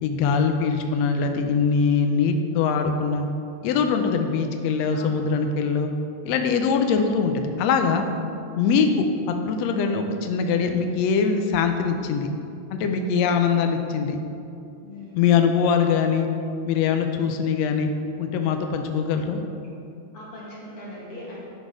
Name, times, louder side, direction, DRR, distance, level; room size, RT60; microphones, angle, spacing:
voice 1, 0.0-3.2 3.6-5.9 6.2-8.1 8.6-12.3 12.7-14.2 15.1-16.3 16.6-17.9 18.2-19.4, left 6 dB, 75° left, 5 dB, 1.7 m, -22 dB
voice 2, 14.8-15.2 20.1-21.5, left 1 dB, 50° left, -7 dB, 2.6 m, -40 dB
11.0 x 4.3 x 5.0 m, 2.5 s
omnidirectional pair, 3.4 m